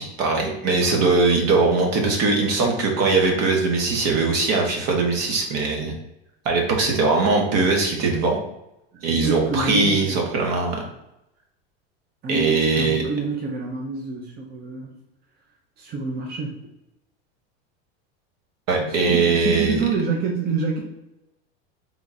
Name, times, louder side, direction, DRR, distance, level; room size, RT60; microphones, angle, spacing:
voice 1, 0.0-5.9 6.4-8.4 9.0-10.8 12.3-13.0 18.7-19.7, right 3 dB, 55° right, 1 dB, 1.2 m, -21 dB
voice 2, 8.9-10.2 12.2-15.0 15.8-16.6 18.7-20.8, right 4 dB, 30° right, 0 dB, 0.7 m, -27 dB
3.7 x 2.4 x 4.0 m, 0.89 s
supercardioid pair, 105°, 31 cm